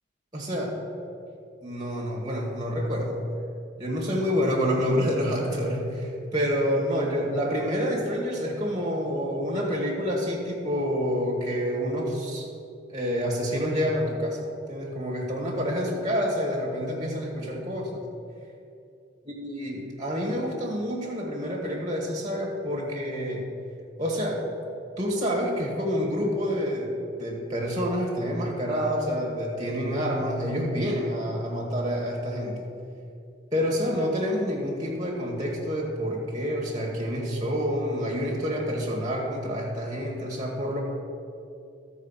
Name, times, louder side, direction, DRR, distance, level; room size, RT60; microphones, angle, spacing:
voice 1, 0.3-0.8 1.6-3.2 3.8-12.5 12.9-18.0 19.3-23.5 24.0-24.4 25.0-32.6 33.5-40.8, equal, 20° right, -2 dB, 1.8 m, -28 dB
12.5 x 4.8 x 7.3 m, 2.6 s
head